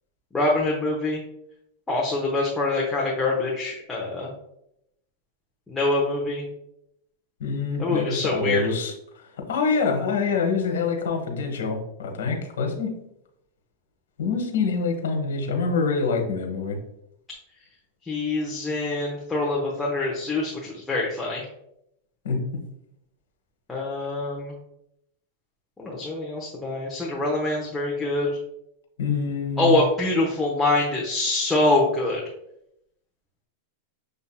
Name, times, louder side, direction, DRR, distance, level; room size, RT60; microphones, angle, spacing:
voice 1, 0.3-1.2 1.9-4.3 5.7-6.5 7.8-8.6 18.0-21.4 23.7-24.5 25.8-28.3 29.6-32.2, left 2 dB, 10° left, -4 dB, 0.9 m, -25 dB
voice 2, 7.4-8.9 9.5-12.9 14.2-16.8 22.2-22.4 29.0-29.7, left 4 dB, 80° left, 2 dB, 1.1 m, -25 dB
6.9 x 2.7 x 2.2 m, 0.78 s
hypercardioid pair, 120°, 0 cm